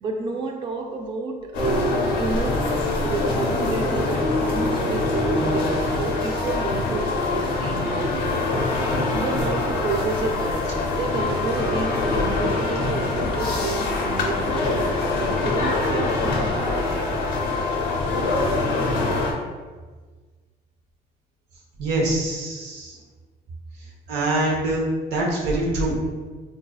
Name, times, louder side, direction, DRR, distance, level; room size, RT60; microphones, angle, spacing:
voice 1, 0.0-2.7 3.0-8.4 9.1-17.5, right 3 dB, 30° right, 3 dB, 0.3 m, -30 dB
sound 1, 1.5-19.3, left 2 dB, 90° left, 0.8 m, -24 dB
voice 2, 21.8-23.0 24.1-24.8 25.1-26.0, right 2 dB, 85° right, -1 dB, 0.8 m, -24 dB
3.8 x 2.6 x 2.3 m, 1.4 s
cardioid pair, 110°, 17 cm